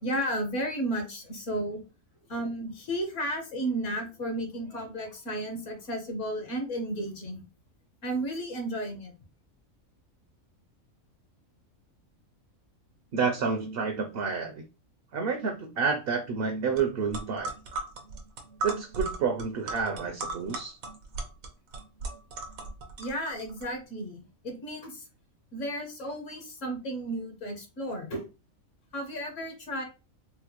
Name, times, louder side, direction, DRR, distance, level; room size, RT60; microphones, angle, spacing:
voice 1, 0.0-1.8 2.3-7.4 8.0-9.1 23.0-25.0 25.5-28.2 28.9-29.8, right 1 dB, 65° left, 1.3 m, -33 dB
voice 2, 13.1-14.6 15.1-17.5 18.6-20.8, right 5 dB, 60° right, 0.6 m, -29 dB
sound 1, 16.8-16.9 17.1-23.7, right 3 dB, 90° right, 1.3 m, -37 dB
4.2 x 2.1 x 2.9 m
omnidirectional pair, 1.4 m